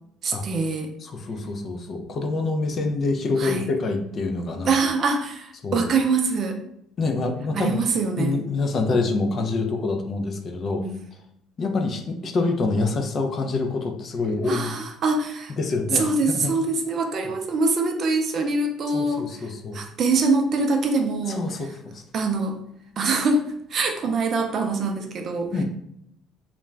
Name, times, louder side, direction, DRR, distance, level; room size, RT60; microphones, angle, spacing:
voice 1, 0.2-0.9 3.4-3.7 4.6-6.6 7.5-8.4 10.8-11.0 14.5-15.5 15.9-21.4 22.1-22.6 23.0-25.5, right 3 dB, 50° right, 4 dB, 0.4 m, -24 dB
voice 2, 1.0-4.7 5.6-5.9 7.0-7.8 8.2-10.8 11.6-14.7 15.6-16.5 18.9-19.8 21.3-22.0 25.5-25.6, left 3 dB, 45° left, 4 dB, 0.4 m, -26 dB
2.4 x 2.1 x 3.1 m, 0.75 s
cardioid pair, 105°, 0 cm